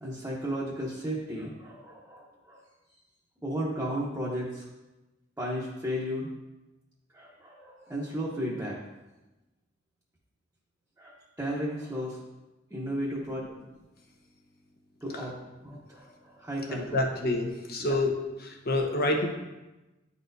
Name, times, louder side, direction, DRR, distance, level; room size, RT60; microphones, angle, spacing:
voice 1, 0.0-2.6 3.4-4.6 5.4-6.3 7.1-8.8 11.0-12.2 12.7-13.4 15.0-15.3 15.6-17.0 17.8-18.0, equal, 10° right, -6 dB, 0.9 m, -34 dB
voice 2, 16.9-18.1 18.4-19.3, left 2 dB, 50° left, 2 dB, 0.9 m, -27 dB
10.5 x 4.2 x 2.7 m, 1.1 s
head